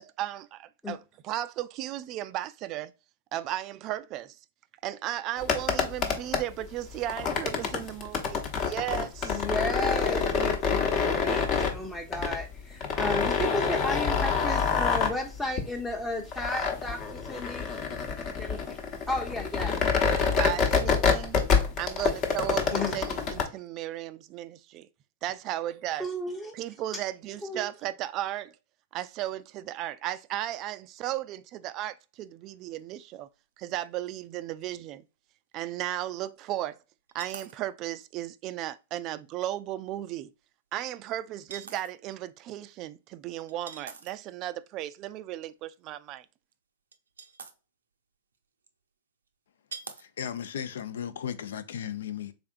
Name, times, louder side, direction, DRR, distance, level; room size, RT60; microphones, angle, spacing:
voice 1, 0.0-2.9 3.3-4.4 4.8-9.4 20.1-21.4 21.8-24.9 25.2-26.1 26.5-28.5 28.9-33.3 33.6-35.0 35.5-36.8 37.1-40.3 40.7-46.3, right 13 dB, 40° right, 0.3 m, -35 dB
sound 1, 5.4-23.4, left 5 dB, 40° left, 0.9 m, -27 dB
voice 2, 9.2-17.7 18.4-18.8 19.1-19.8 22.7-23.0 26.0-26.5 27.4-27.7, left 1 dB, 10° left, 0.7 m, -33 dB
sound 2, 33.8-33.9 34.1-34.2 37.1-37.6 38.0-38.1 39.9-40.0 41.5-41.9 43.5-44.3 46.5-46.6 46.9-47.5 48.6-48.7 49.7-50.0 50.5-50.7, right 5 dB, 90° right, 0.5 m, -43 dB
voice 3, 50.0-52.3, left 9 dB, 75° left, 0.5 m, -35 dB
3.6 x 3.4 x 2.4 m
hypercardioid pair, 115°, 0 cm